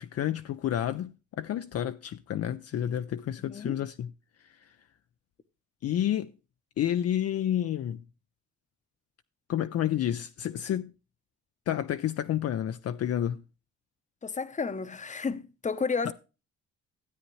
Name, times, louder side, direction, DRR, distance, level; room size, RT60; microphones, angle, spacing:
voice 1, 0.0-4.1 4.4-4.8 5.8-6.3 6.8-8.0 9.5-10.9 11.7-13.4 16.0-16.1, left 11 dB, 55° left, 0.5 m, -30 dB
voice 2, 3.4-3.8 14.2-16.1, left 5 dB, 25° left, 0.8 m, -32 dB
13.0 x 8.7 x 3.1 m
cardioid pair, 90°, 30 cm